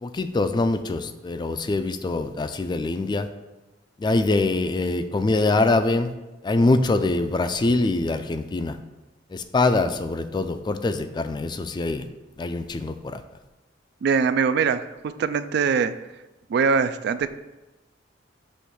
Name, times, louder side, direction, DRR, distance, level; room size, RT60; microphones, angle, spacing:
voice 1, 0.0-3.3 4.0-6.1 6.4-8.8 9.3-12.0 12.4-13.2, left 2 dB, 25° left, 10 dB, 0.3 m, -24 dB
voice 2, 14.0-14.9 15.2-15.9 16.5-17.3, right 5 dB, 60° right, 13 dB, 0.3 m, -22 dB
6.3 x 3.0 x 5.8 m, 1.0 s
head